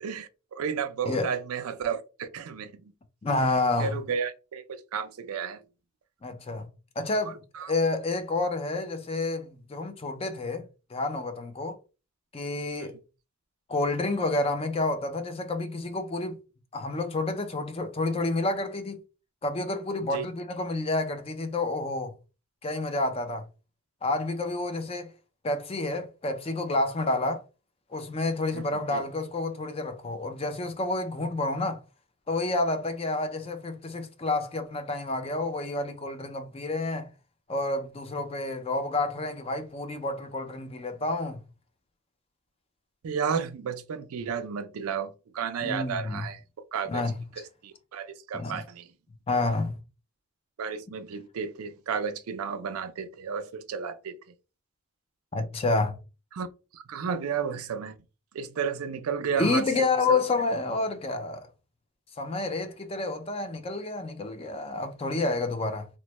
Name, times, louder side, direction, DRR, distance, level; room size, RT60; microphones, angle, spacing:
voice 1, 0.0-2.9 3.8-5.6 7.5-7.7 12.8-12.9 20.1-20.3 28.5-28.7 28.9-29.0 43.0-46.4 46.7-47.0 47.6-48.9 50.6-54.2 56.3-56.5 56.7-58.0 58.3-60.2, right 6 dB, 85° right, 0.4 m, -32 dB
voice 2, 3.2-4.0 6.2-6.7 7.0-11.8 12.3-13.0 13.7-16.4 16.7-19.0 19.4-22.1 22.6-23.4 24.0-25.1 25.4-27.4 27.9-31.8 32.3-37.1 37.5-41.4 45.6-46.3 46.9-47.2 48.3-48.6 49.3-49.8 55.3-56.0 59.4-61.5 62.2-65.9, left 2 dB, 25° left, 0.4 m, -29 dB
3.0 x 2.1 x 3.0 m
head